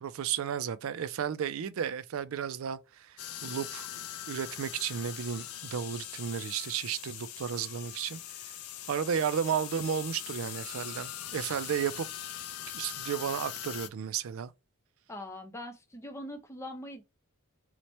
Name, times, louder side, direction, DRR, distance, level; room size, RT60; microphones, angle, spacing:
voice 1, 0.0-8.2 8.9-12.1 12.7-14.5, right 8 dB, 70° right, 0.3 m, -33 dB
sound 1, 3.2-13.9, left 11 dB, 80° left, 0.5 m, -41 dB
voice 2, 15.1-17.0, left 1 dB, 10° left, 0.5 m, -42 dB
3.0 x 2.1 x 4.1 m
head